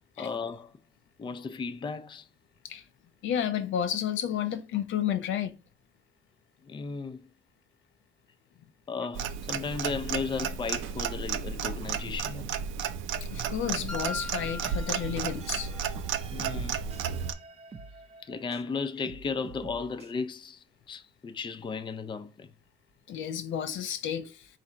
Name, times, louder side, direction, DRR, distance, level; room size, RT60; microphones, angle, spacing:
voice 1, 0.2-0.7 1.2-2.3 6.6-7.3 8.9-12.7 16.3-16.8 18.2-22.5, left 5 dB, 25° left, 0.4 m, -35 dB
voice 2, 3.2-5.5 11.8-11.9 13.3-15.7 23.1-24.5, left 9 dB, 75° left, 0.6 m, -31 dB
Clock, 9.1-17.3, right 7 dB, 80° right, 0.4 m, -33 dB
sound 1, 13.9-15.9, left 2 dB, 5° left, 0.8 m, -41 dB
sound 2, 14.6-18.7 19.0-20.1, right 4 dB, 30° right, 0.6 m, -47 dB
4.0 x 2.5 x 4.3 m
cardioid pair, 90°, 20 cm